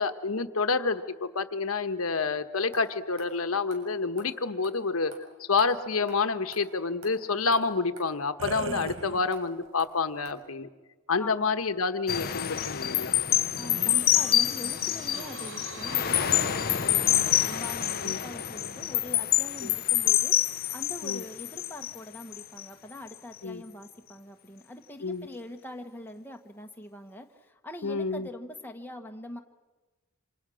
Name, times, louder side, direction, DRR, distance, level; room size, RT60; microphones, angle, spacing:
voice 1, 0.0-5.1 5.4-10.7 11.1-13.2 16.7-16.8 18.0-18.2 19.6-19.7 21.0-21.2 23.4-23.6 25.0-25.3 27.8-28.3, left 4 dB, 75° left, 9 dB, 1.2 m, -28 dB
sound 1, 2.7-2.8 3.2-3.3 3.7-3.8 4.2-4.3 4.6-4.7 5.1-5.2 5.6-5.7 6.1-6.2 6.5-6.6 7.0-7.1 7.5-7.6 8.0-8.1 8.4-8.5 8.9-9.0 9.3-9.4 9.8-9.9 10.2-10.3, right 2 dB, 80° right, 7.1 m, -47 dB
sound 2, 8.4-9.6 10.3-10.4 13.5-17.5, right 4 dB, 60° right, 1.1 m, -41 dB
voice 2, 8.6-9.3 11.2-11.5 13.6-29.4, left 1 dB, 10° left, 3 dB, 1.4 m, -43 dB
sound 3, 12.1-22.7 23.1-23.4, left 11 dB, 45° left, 0.8 m, -27 dB
28.0 x 27.0 x 6.4 m, 1.2 s
head